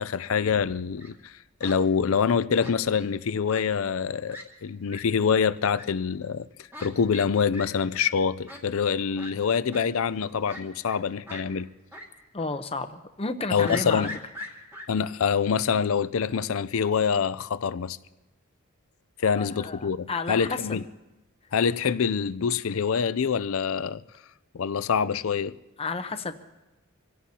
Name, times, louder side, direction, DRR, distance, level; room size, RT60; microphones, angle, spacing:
voice 1, 0.0-6.5 6.8-11.7 13.5-14.2 14.9-18.0 19.2-20.8 21.5-24.0 24.5-25.5, left 6 dB, 70° left, 0.5 m, -25 dB
Fowl, 0.7-1.1 1.6-1.8 2.6-3.1 3.5-3.6 4.0-4.1 4.3-4.4 4.9-5.0 5.7-5.8 6.7-6.9 7.1-7.3 7.5-7.7 7.9-8.1 8.5-8.6 9.2-9.3 9.7-9.9 10.5-11.0 11.3-11.4 11.9-12.1 12.4-12.5 13.6-14.9, left 1 dB, 10° right, 2.0 m, -40 dB
voice 2, 12.3-14.1 14.5-14.6 19.3-20.8 25.8-26.4, left 3 dB, 25° left, 0.8 m, -32 dB
26.0 x 17.0 x 2.9 m
head